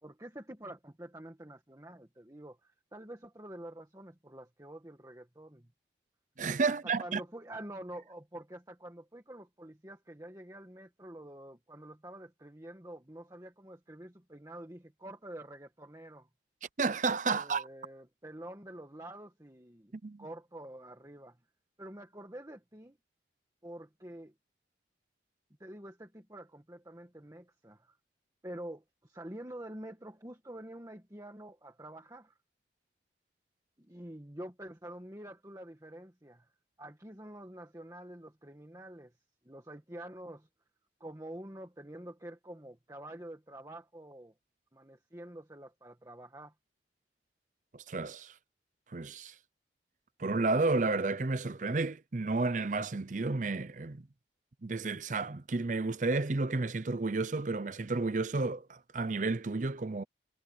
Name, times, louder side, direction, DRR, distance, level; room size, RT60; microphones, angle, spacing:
voice 1, 0.0-5.7 6.6-16.3 17.3-19.9 20.2-21.4 21.8-23.0 23.6-24.3 25.6-28.0 28.4-32.4 33.8-36.5 36.8-39.1 39.4-40.5 41.0-44.3 44.7-46.5, right 1 dB, 20° right, 1.6 m, -47 dB
voice 2, 6.4-7.2 16.8-17.7 19.9-20.2 47.7-48.4 48.9-49.4 50.2-54.1 54.6-60.0, right 3 dB, 45° right, 0.6 m, -31 dB
head